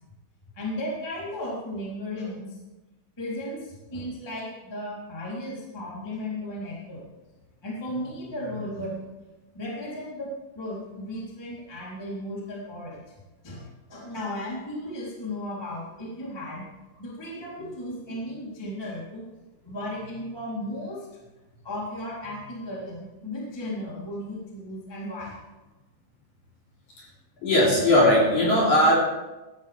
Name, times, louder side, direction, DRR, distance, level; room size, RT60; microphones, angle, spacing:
voice 1, 0.5-2.6 3.2-7.1 7.6-9.1 9.5-13.0 13.4-16.7 17.0-19.3 19.6-21.1 21.6-25.3, left 1 dB, 5° left, -5 dB, 2.7 m, -35 dB
voice 2, 27.4-28.9, left 1 dB, 45° left, -5 dB, 4.1 m, -19 dB
17.0 x 12.0 x 3.6 m, 1.1 s
omnidirectional pair, 5.5 m